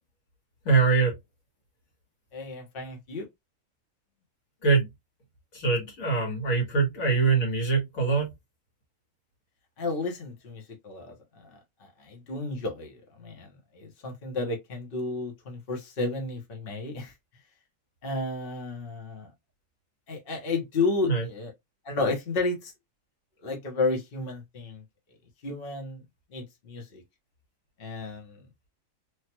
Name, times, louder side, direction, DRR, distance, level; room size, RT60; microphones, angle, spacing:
voice 1, 0.7-1.1 4.6-4.9 5.5-8.3 21.1-21.2, right 4 dB, 75° left, 1.8 m, -23 dB
voice 2, 2.3-3.3 9.8-17.1 18.0-19.3 20.1-21.5 21.8-22.7 23.4-24.8 25.4-26.0 26.3-27.0 27.8-28.4, left 3 dB, 45° left, 1.1 m, -32 dB
3.2 x 2.3 x 2.8 m
omnidirectional pair, 1.4 m